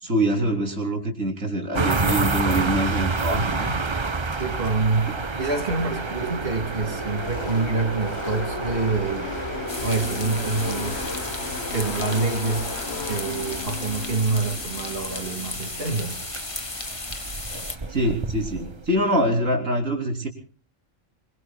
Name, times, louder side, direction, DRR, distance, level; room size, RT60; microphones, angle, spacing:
voice 1, 0.0-3.7 5.1-5.2 17.9-20.3, right 1 dB, 90° right, 2 dB, 3.7 m, -24 dB
sound 1, 1.7-19.0, right 3 dB, 25° right, 0.7 m, -30 dB
voice 2, 3.3-3.7 4.4-5.1 5.4-9.3 9.8-11.0 11.7-12.7 13.1-16.2, right 3 dB, 45° right, 5 dB, 2.3 m, -26 dB
Car passing by / Race car auto racing, 6.1-16.1, left 6 dB, 55° left, 1.3 m, -36 dB
sound 2, 9.7-17.8, left 2 dB, 25° left, 1.6 m, -34 dB
26.5 x 24.0 x 2.3 m, 0.41 s
omnidirectional pair, 1.3 m